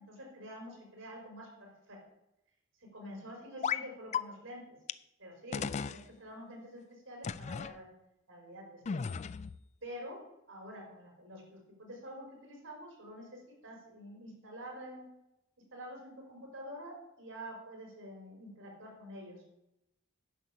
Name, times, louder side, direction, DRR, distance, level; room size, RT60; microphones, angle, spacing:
voice 1, 0.0-2.0 2.9-4.6 5.2-7.9 8.3-9.0 9.8-10.2 10.5-15.1 15.7-19.4, equal, 90° right, 0 dB, 4.3 m, -47 dB
sound 1, 3.6-3.8 4.1-4.2 4.9-5.0 5.5-6.0 7.2-7.7 8.9-9.6, left 6 dB, 35° left, 0.3 m, -35 dB
10.0 x 6.3 x 6.9 m, 0.85 s
head